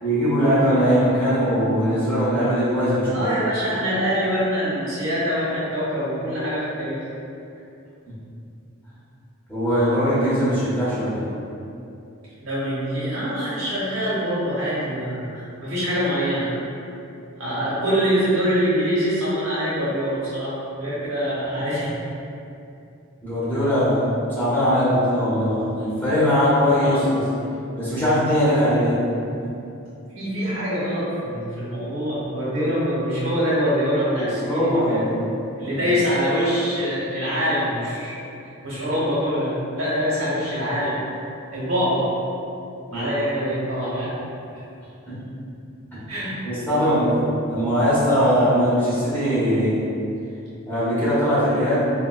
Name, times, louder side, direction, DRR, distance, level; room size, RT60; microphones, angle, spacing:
voice 1, 0.0-3.3 8.1-8.2 9.5-11.3 23.2-27.3 27.8-29.0 29.4-29.5 34.1-35.2 42.9-43.1 45.1-45.2 45.9-46.0 46.4-49.8 50.7-51.8, equal, 10° left, -13 dB, 0.9 m, -21 dB
voice 2, 3.1-7.0 12.4-16.5 17.4-22.0 26.8-27.0 30.1-35.1 35.6-38.1 38.6-41.0 41.5-42.1 42.9-44.1 46.1-46.4, equal, 65° right, -9 dB, 0.9 m, -24 dB
3.8 x 2.2 x 2.3 m, 2.7 s
head